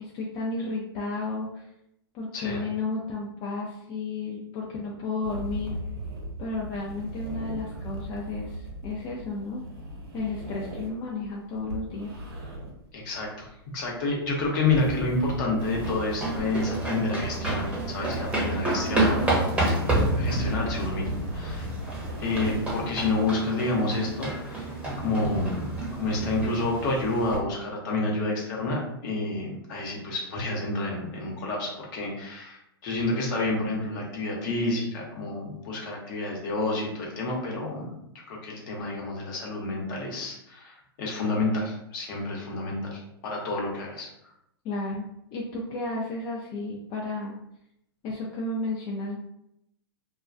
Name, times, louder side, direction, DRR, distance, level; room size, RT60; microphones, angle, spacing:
voice 1, 0.0-1.7 2.1-5.8 6.4-9.6 10.1-12.2 44.6-47.3 48.0-49.2, left 3 dB, 35° left, -3 dB, 0.4 m, -33 dB
sound 1, 5.2-19.5 19.8-22.9, right 1 dB, 70° right, 0.8 m, -38 dB
voice 2, 12.9-13.5 13.7-19.2 19.6-21.7 22.2-24.7 25.0-25.6 26.0-37.9 38.3-44.1, left 2 dB, 50° left, -2 dB, 0.8 m, -29 dB
sound 2, 15.6-27.4, right 1 dB, 10° right, 0.7 m, -29 dB
2.2 x 2.2 x 2.5 m, 0.81 s
hypercardioid pair, 120°, 13 cm